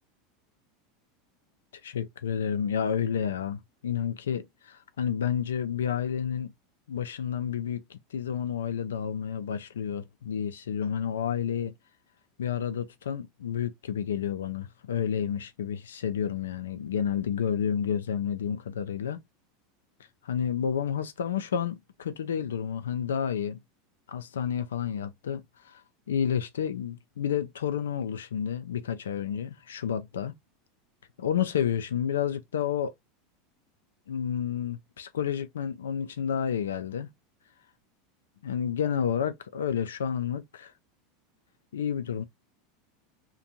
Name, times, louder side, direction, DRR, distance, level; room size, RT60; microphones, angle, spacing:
voice 1, 1.8-6.5 6.9-11.7 12.4-19.2 20.2-23.6 24.1-25.8 26.1-30.3 31.2-32.9 34.1-37.1 38.4-40.7 41.7-42.2, left 8 dB, 85° left, 0.4 m, -30 dB
2.6 x 2.2 x 2.8 m
hypercardioid pair, 95°, 0 cm